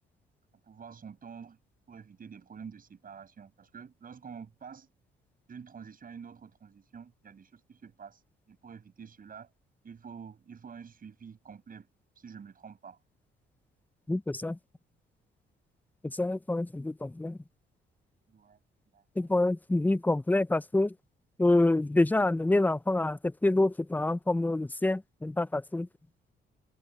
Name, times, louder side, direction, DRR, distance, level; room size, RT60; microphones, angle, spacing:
voice 1, 0.6-1.6 1.9-4.9 5.5-8.2 8.5-9.5 9.8-11.9 12.2-13.0 18.3-18.6 18.9-19.3, right 6 dB, 45° right, 7.5 m, -48 dB
voice 2, 14.1-14.6 16.0-17.4 19.2-20.9 21.4-25.9, left 2 dB, 10° left, 0.7 m, -27 dB
cardioid pair, 90°, 20 cm